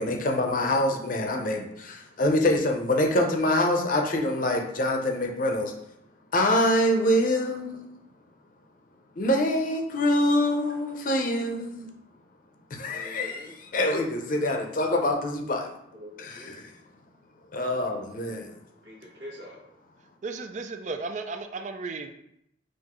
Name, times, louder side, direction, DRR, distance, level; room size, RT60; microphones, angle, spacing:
voice 1, 0.0-5.7 6.3-7.9 9.2-11.9 12.7-15.7 16.2-16.7 17.5-18.6, left 1 dB, 45° left, 3 dB, 0.6 m, -25 dB
voice 2, 12.8-13.5 15.9-16.6 18.7-19.7, left 1 dB, 80° right, -2 dB, 1.1 m, -45 dB
voice 3, 20.2-22.1, right 3 dB, 40° right, 6 dB, 0.4 m, -34 dB
5.9 x 2.6 x 3.0 m, 0.76 s
head